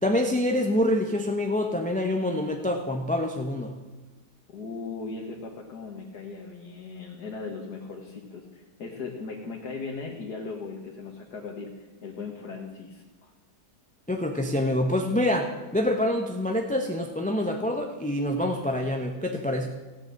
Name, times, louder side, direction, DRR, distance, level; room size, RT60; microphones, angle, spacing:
voice 1, 0.0-3.7 14.1-19.7, left 1 dB, 5° left, 3 dB, 0.8 m, -26 dB
voice 2, 4.5-13.3, left 4 dB, 75° left, 0 dB, 2.1 m, -38 dB
16.5 x 7.0 x 8.8 m, 1.2 s
omnidirectional pair, 1.7 m